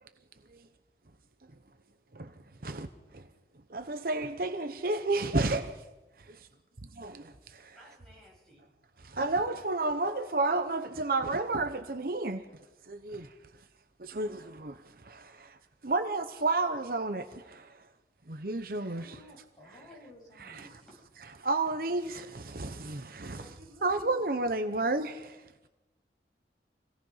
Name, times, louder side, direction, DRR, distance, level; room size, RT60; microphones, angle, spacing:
voice 1, 3.9-5.6 9.2-12.4 14.2-14.3 15.9-17.2 18.4-19.0 21.5-22.1 23.8-25.1, right 2 dB, 55° right, 0.9 m, -29 dB
voice 2, 7.7-8.7 19.9-20.0 20.6-21.1 22.1-22.3 23.3-25.0, equal, 5° left, 7.5 m, -55 dB
voice 3, 18.8-20.7, left 1 dB, 25° left, 7.9 m, -54 dB
25.5 x 17.5 x 5.8 m
head